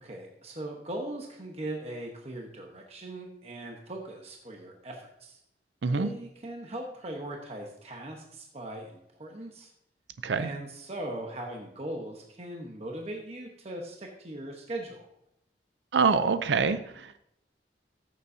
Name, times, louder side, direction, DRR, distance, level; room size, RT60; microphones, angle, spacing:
voice 1, 0.0-5.4 5.9-9.7 10.4-15.1, right 1 dB, 35° right, 1 dB, 1.0 m, -39 dB
voice 2, 15.9-17.2, right 5 dB, 85° right, 12 dB, 0.5 m, -25 dB
14.0 x 7.0 x 2.7 m, 0.77 s
head